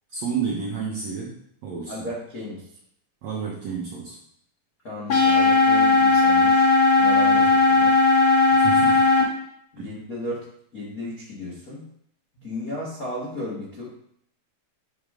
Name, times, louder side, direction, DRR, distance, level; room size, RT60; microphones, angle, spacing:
voice 1, 0.1-1.4 1.6-1.9 3.2-4.2 8.6-9.0 9.8-9.9, right 6 dB, 80° right, -3 dB, 1.5 m, -30 dB
voice 2, 1.9-2.7 4.8-7.9 9.7-10.4 10.7-11.9 12.3-13.8, left 1 dB, 75° left, -6 dB, 0.8 m, -34 dB
sound 1, 5.1-9.2, left 3 dB, 50° left, 1.6 m, -17 dB
8.6 x 4.9 x 3.7 m, 0.71 s
omnidirectional pair, 4.4 m